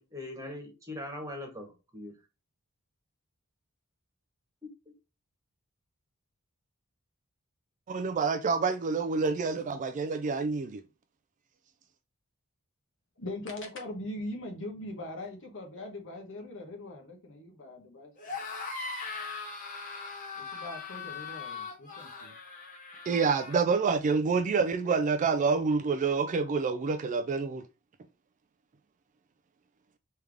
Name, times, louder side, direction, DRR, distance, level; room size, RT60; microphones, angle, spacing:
voice 1, 0.0-2.1, left 1 dB, 15° right, 1.3 m, -41 dB
voice 2, 7.9-10.8 23.1-27.6, right 4 dB, 35° right, 0.3 m, -27 dB
voice 3, 13.2-18.4 20.4-22.4, left 1 dB, 60° left, 1.2 m, -41 dB
sound 1, 18.2-23.6, left 4 dB, 35° left, 1.0 m, -40 dB
3.4 x 3.4 x 3.4 m
head